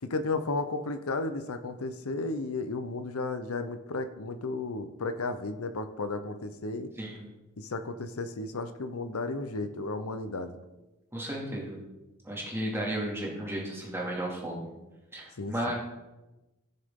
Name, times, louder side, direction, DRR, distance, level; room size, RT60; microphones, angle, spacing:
voice 1, 0.0-6.9 7.6-10.6 15.4-15.7, left 3 dB, 75° left, 9 dB, 0.8 m, -33 dB
voice 2, 7.0-7.3 11.1-11.8 12.2-14.6 15.1-15.7, right 1 dB, 10° right, -3 dB, 2.3 m, -34 dB
15.0 x 6.6 x 3.7 m, 1.0 s
head